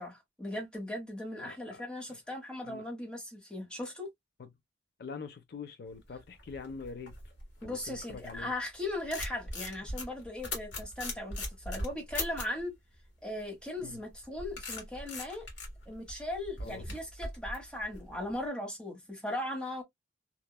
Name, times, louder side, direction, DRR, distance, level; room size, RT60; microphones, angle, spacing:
voice 1, 0.0-4.1 7.6-12.7 13.2-15.5 15.9-19.8, left 1 dB, 5° left, 0.9 m, -38 dB
voice 2, 1.4-1.8 2.6-2.8 5.0-7.2 7.6-8.5 9.8-9.9 13.8-14.0 16.6-16.8, left 5 dB, 55° left, 0.4 m, -44 dB
sound 1, 6.2-8.5 8.9-12.6 13.9-18.3, left 2 dB, 75° left, 1.5 m, -40 dB
2.9 x 2.2 x 2.2 m
head